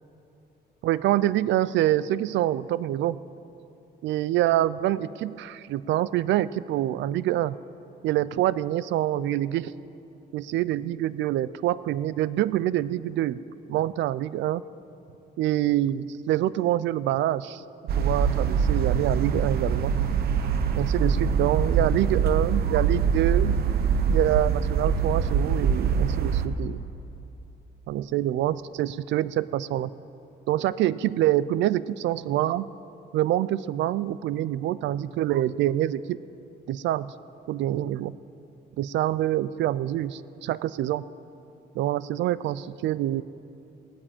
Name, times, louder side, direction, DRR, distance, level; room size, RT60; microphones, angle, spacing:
voice 1, 0.8-3.2 4.0-7.6 8.0-9.7 10.3-13.4 13.7-14.6 15.4-17.6 18.0-19.9 20.8-23.5 24.1-26.8 27.9-29.9 30.5-32.7 33.1-36.2 36.7-37.1 37.5-38.1 38.8-41.0 41.8-43.2, right 13 dB, 85° right, 18 dB, 0.4 m, -26 dB
sound 1, 17.9-26.5, right 6 dB, 60° right, 0.9 m, -24 dB
17.5 x 8.7 x 8.9 m, 2.9 s
cardioid pair, 175°, 18 cm